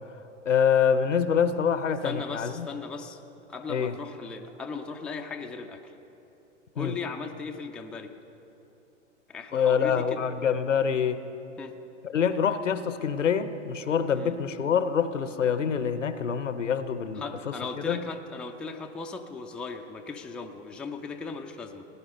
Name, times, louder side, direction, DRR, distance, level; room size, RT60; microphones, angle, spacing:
voice 1, 0.5-2.7 3.7-3.9 6.8-6.9 9.5-11.2 12.0-18.0, left 7 dB, 85° left, 12 dB, 0.9 m, -26 dB
voice 2, 2.0-3.2 3.5-5.9 6.7-8.1 9.3-10.2 11.6-11.7 14.2-14.3 17.2-21.9, left 4 dB, 5° left, 3 dB, 0.4 m, -37 dB
17.5 x 10.0 x 5.4 m, 2.9 s
hypercardioid pair, 110°, 36 cm